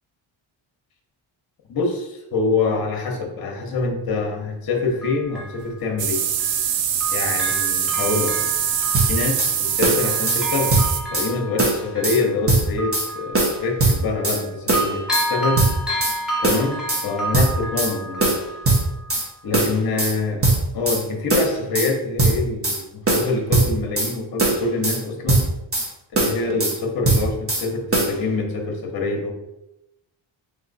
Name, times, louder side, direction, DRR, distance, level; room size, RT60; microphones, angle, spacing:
voice 1, 1.7-6.2 7.1-8.5 9.0-10.8 11.1-15.7 16.4-18.3 19.4-25.4 26.1-29.3, left 3 dB, 45° left, 2 dB, 0.9 m, -25 dB
Bell, 3.8-3.9 4.7-6.7 7.0-14.4 14.7-19.3 19.8-19.9, right 1 dB, ahead, 0.8 m, -31 dB
sound 1, 6.0-11.0, right 9 dB, 70° right, 0.6 m, -23 dB
sound 2, 8.9-9.5 9.8-10.4 10.7-11.3 11.6-12.2 12.5-13.1 13.3-14.4 14.7-15.3 15.6-16.2 16.4-17.0 17.3-17.9 18.2-19.3 19.5-20.1 20.4-21.0 21.3-21.9 22.2-22.8 23.1-24.1 24.4-25.0 25.3-25.9 26.1-26.8 27.0-27.6 27.9-28.1, right 2 dB, 30° right, 1.1 m, -20 dB
3.6 x 3.1 x 4.0 m, 0.90 s
wide cardioid pair, 145°, 48 cm